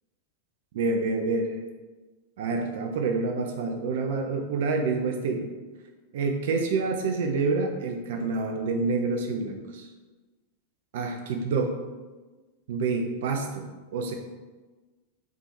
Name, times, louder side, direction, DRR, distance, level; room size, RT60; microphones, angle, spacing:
voice 1, 0.7-1.5 2.4-5.5 6.1-9.9 10.9-11.7 12.7-13.7 13.9-14.1, right 4 dB, 55° right, 4 dB, 0.4 m, -27 dB
3.5 x 3.0 x 4.3 m, 1.3 s
figure-of-eight pair, 90°, 0 cm